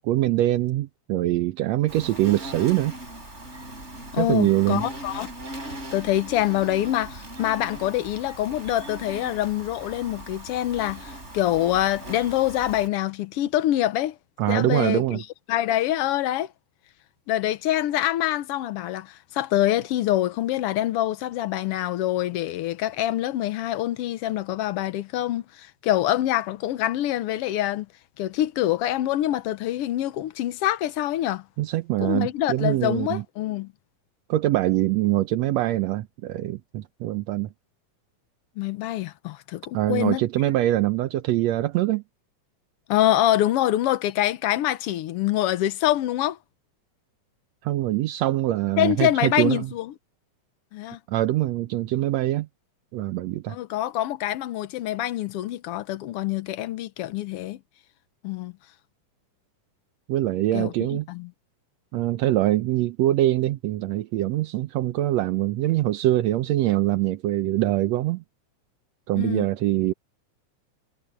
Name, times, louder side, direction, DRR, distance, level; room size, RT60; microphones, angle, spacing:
voice 1, 0.0-2.9 4.2-4.8 14.4-15.2 31.6-33.2 34.3-37.5 39.7-42.0 47.6-49.7 51.1-52.5 52.9-53.6 60.1-61.1 61.9-68.2 69.1-69.9, right 15 dB, 70° right, 1.8 m, -23 dB
Insect, 1.9-12.9, right 1 dB, 20° right, 5.7 m, -39 dB
voice 2, 4.1-5.3 5.9-14.2 14.5-15.2 15.5-16.5 17.3-27.9 28.2-31.4 32.0-33.7 38.6-40.2 42.9-46.4 48.8-49.9 50.7-51.0 53.5-57.6 58.2-58.5 60.5-61.3 69.2-69.5, left 13 dB, 80° left, 1.3 m, -25 dB
omnidirectional pair, 3.6 m